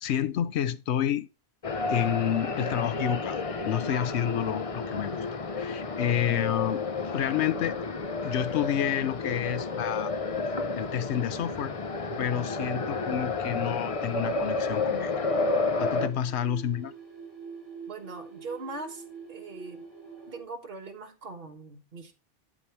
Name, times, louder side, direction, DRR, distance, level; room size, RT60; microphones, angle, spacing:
voice 1, 0.0-1.3 1.9-3.4 3.7-5.3 5.5-6.8 7.1-7.8 8.2-10.1 10.7-11.7 12.2-15.2 15.8-16.9, left 10 dB, 75° left, 0.9 m, -29 dB
sound 1, 1.6-16.1, left 3 dB, 35° left, 0.7 m, -31 dB
sound 2, 14.8-20.4, right 6 dB, 20° right, 3.3 m, -45 dB
voice 2, 17.9-19.8 20.2-22.1, right 3 dB, 55° right, 1.6 m, -41 dB
8.4 x 8.4 x 3.1 m
omnidirectional pair, 1.1 m